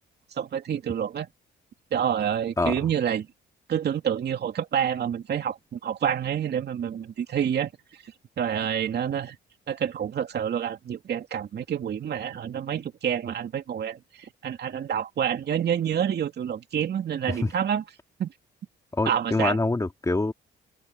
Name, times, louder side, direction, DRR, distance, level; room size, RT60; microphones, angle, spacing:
voice 1, 0.4-1.3 1.9-3.3 3.7-7.7 8.4-9.4 9.7-17.8 18.2-18.3 19.1-19.6, right 8 dB, 55° right, 2.6 m, -28 dB
voice 2, 18.9-20.3, left 2 dB, 15° left, 2.4 m, -25 dB
cardioid pair, 90°, 20 cm